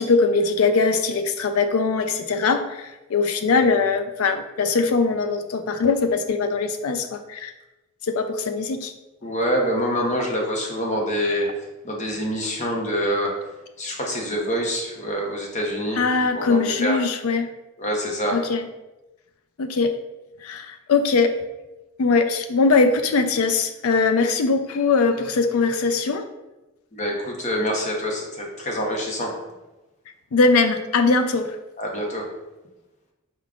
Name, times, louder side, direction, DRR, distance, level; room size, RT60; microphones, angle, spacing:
voice 1, 0.0-7.5 8.1-8.9 16.0-17.5 18.3-18.7 19.6-20.0 20.4-21.4 22.0-26.3 30.3-31.6, left 4 dB, 90° left, 7 dB, 0.4 m, -21 dB
voice 2, 9.2-11.5 11.8-13.3 13.8-17.0 17.8-18.4 26.9-29.3 31.8-32.3, equal, 35° left, 0 dB, 0.8 m, -26 dB
4.6 x 3.6 x 2.4 m, 1.0 s
head